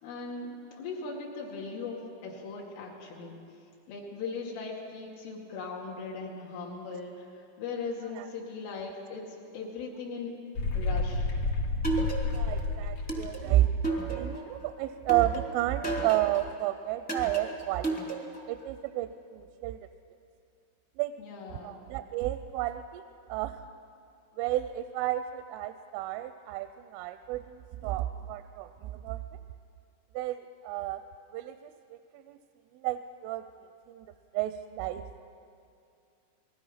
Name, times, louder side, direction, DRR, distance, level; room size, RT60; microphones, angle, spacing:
voice 1, 0.0-3.4 3.9-10.4 10.7-11.3 21.2-21.8, left 4 dB, 80° left, -3 dB, 4.8 m, -39 dB
sound 1, 10.6-14.1, left 3 dB, 55° left, 1.9 m, -31 dB
sound 2, 11.8-12.6 13.1-14.5 15.1-16.5 17.1-18.5, right 3 dB, 5° left, 1.0 m, -33 dB
voice 2, 12.3-13.7 14.0-18.1 18.5-19.8 21.0-21.1 21.6-23.0 23.3-23.6 24.4-29.2 30.1-31.0 31.3-32.4 32.7-33.5 33.9-34.1 34.3-35.1, right 14 dB, 85° right, 9 dB, 3.2 m, -31 dB
28.5 x 20.0 x 5.7 m, 2.4 s
omnidirectional pair, 5.5 m